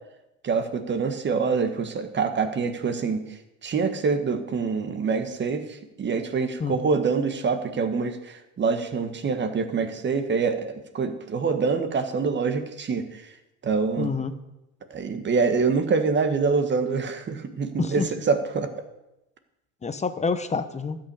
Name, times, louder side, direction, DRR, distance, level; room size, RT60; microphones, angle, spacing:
voice 1, 0.4-3.2 3.6-13.2 13.6-14.1 14.9-18.7, right 5 dB, 25° right, 7 dB, 1.5 m, -25 dB
voice 2, 14.0-14.3 17.8-18.1 19.8-21.0, left 4 dB, 15° left, 10 dB, 1.0 m, -27 dB
12.5 x 5.9 x 8.3 m, 0.94 s
hypercardioid pair, 95°, 41 cm